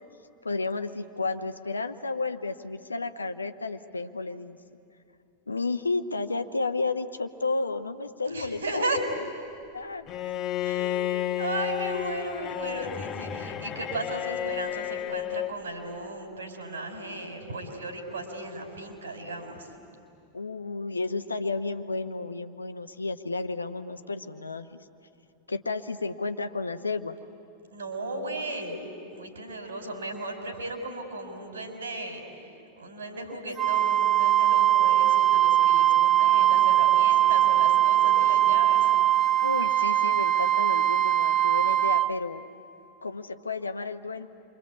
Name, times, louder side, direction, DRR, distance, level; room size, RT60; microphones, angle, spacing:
voice 1, 0.4-4.6 5.5-8.8 9.7-10.3 20.3-24.8 25.5-27.2 39.4-42.4 43.0-44.3, left 3 dB, 80° left, 9 dB, 1.0 m, -32 dB
voice 2, 8.3-9.0 10.6-19.7 27.7-28.8 29.1-32.5 32.8-38.9, right 2 dB, 70° right, 3 dB, 4.9 m, -35 dB
Bowed string instrument, 10.1-15.6, left 12 dB, 25° left, 1.4 m, -32 dB
Wind instrument woodwind instrument, 33.6-42.1, right 12 dB, 25° right, 0.9 m, -21 dB
28.0 x 24.5 x 8.4 m, 2.7 s
figure-of-eight pair, 90°, 0 cm